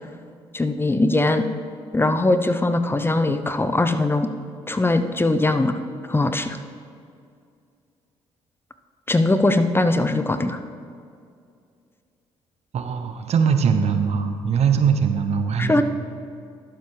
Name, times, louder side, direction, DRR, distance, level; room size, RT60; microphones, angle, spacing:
voice 1, 0.5-1.5 1.9-4.3 4.7-5.8 6.1-6.6 9.1-10.6 15.6-15.8, left 2 dB, 20° left, 9 dB, 0.7 m, -20 dB
voice 2, 12.7-15.8, right 6 dB, 60° right, 8 dB, 0.9 m, -21 dB
11.5 x 7.3 x 4.8 m, 2.4 s
hypercardioid pair, 50°, 13 cm